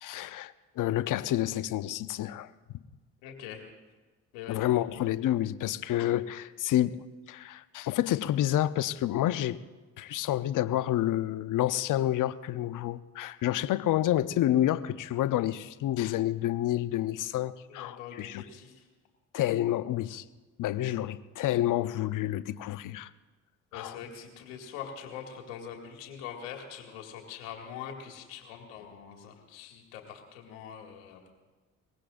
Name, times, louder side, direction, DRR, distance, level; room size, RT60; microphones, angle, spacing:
voice 1, 0.0-2.5 4.5-7.0 7.3-9.6 10.0-18.4 19.3-20.2 20.6-23.1 23.7-24.0, left 13 dB, 55° left, 0.8 m, -29 dB
voice 2, 3.2-3.6 4.3-4.7 17.7-18.9 23.7-31.3, left 8 dB, 80° left, 2.2 m, -43 dB
22.5 x 20.5 x 2.6 m
hypercardioid pair, 55°, 37 cm